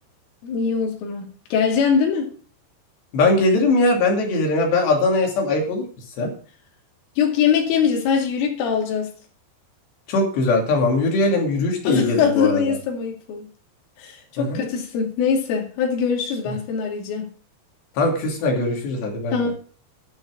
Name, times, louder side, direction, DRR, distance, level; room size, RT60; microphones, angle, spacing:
voice 1, 0.4-2.3 7.2-9.1 11.8-13.5 14.0-17.3 19.3-19.5, left 6 dB, 90° left, 4.9 m, -22 dB
voice 2, 3.1-5.8 6.2-6.3 10.1-12.6 14.4-14.6 18.0-19.4, left 2 dB, 65° left, 4.6 m, -20 dB
12.0 x 7.2 x 6.1 m
omnidirectional pair, 5.6 m